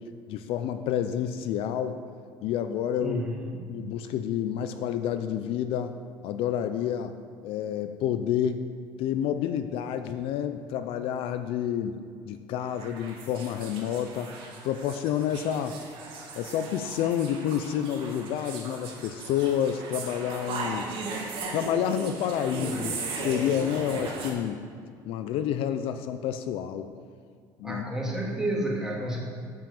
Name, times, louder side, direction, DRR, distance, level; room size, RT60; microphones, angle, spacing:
voice 1, 0.3-2.0 2.4-3.2 3.7-6.0 6.2-7.1 7.4-8.6 9.0-12.0 12.2-14.3 14.6-15.8 16.3-20.9 21.5-24.6 25.0-26.9 27.6-27.8, left 9 dB, 75° left, 9 dB, 0.6 m, -29 dB
voice 2, 3.0-3.6 27.6-29.2, right 1 dB, 5° right, -3 dB, 2.5 m, -30 dB
sound 1, 12.6-24.3, right 3 dB, 65° right, 2.2 m, -37 dB
9.1 x 6.2 x 7.0 m, 2.1 s
cardioid pair, 105°, 10 cm